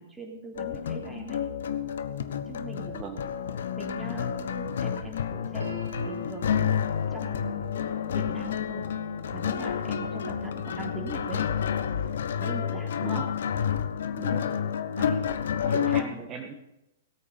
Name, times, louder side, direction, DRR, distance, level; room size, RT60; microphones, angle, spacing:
voice 1, 0.0-1.4 2.5-3.2 3.8-5.7 6.0-7.7 8.1-8.8 9.3-11.5 12.4-13.3 15.0-15.2 15.6-16.2, right 3 dB, 5° right, -1 dB, 3.4 m, -41 dB
sound 1, 0.6-16.0, left 8 dB, 65° left, 1.0 m, -30 dB
voice 2, 2.9-3.3 13.0-13.4 14.2-14.5 15.7-16.5, right 5 dB, 25° right, 1 dB, 1.8 m, -39 dB
Piano, 5.6-11.4, right 2 dB, 80° right, 3.5 m, -46 dB
18.0 x 8.5 x 5.9 m, 0.89 s
figure-of-eight pair, 110°, 0 cm